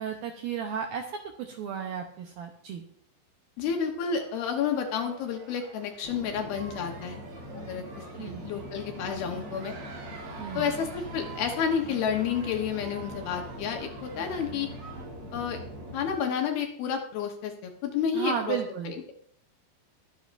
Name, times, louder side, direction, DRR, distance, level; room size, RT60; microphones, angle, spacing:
voice 1, 0.0-2.8 8.2-8.5 10.4-10.7 18.1-18.9, right 7 dB, 80° right, 4 dB, 2.1 m, -34 dB
voice 2, 3.6-7.2 7.7-7.8 8.1-9.7 10.5-14.7 15.3-15.6 15.9-18.6 18.8-19.1, left 7 dB, 70° left, 3 dB, 2.6 m, -30 dB
sound 1, 4.1-15.1, right 4 dB, 60° right, 4.4 m, -48 dB
sound 2, 6.0-16.1, equal, 40° right, 4.5 m, -42 dB
22.5 x 8.4 x 2.6 m, 0.63 s
omnidirectional pair, 5.2 m